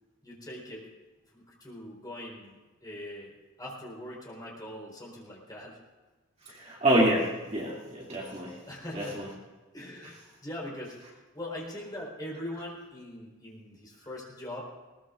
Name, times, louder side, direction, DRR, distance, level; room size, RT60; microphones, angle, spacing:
voice 1, 0.2-0.9 1.3-3.3 3.6-5.8 8.7-9.4 9.7-10.1 10.4-14.6, left 1 dB, 20° left, -4 dB, 4.2 m, -41 dB
voice 2, 6.5-8.5 8.9-9.3, right 1 dB, 35° right, -4 dB, 2.7 m, -27 dB
20.0 x 19.0 x 2.5 m, 1.2 s
head